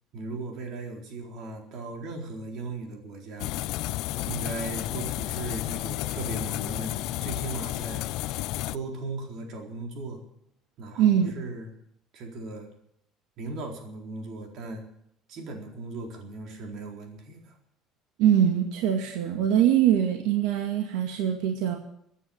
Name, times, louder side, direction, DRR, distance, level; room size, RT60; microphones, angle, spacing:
voice 1, 0.1-3.5 4.3-8.1 8.7-10.2 10.8-11.7 12.1-12.7 13.4-14.8 15.3-17.5, right 3 dB, 45° right, 2 dB, 4.1 m, -37 dB
sound 1, 3.4-8.8, left 17 dB, 60° left, 0.5 m, -32 dB
voice 2, 11.0-11.3 18.2-21.8, right 10 dB, 75° right, 3 dB, 2.2 m, -23 dB
15.0 x 10.0 x 9.2 m, 0.73 s
cardioid pair, 175°, 0 cm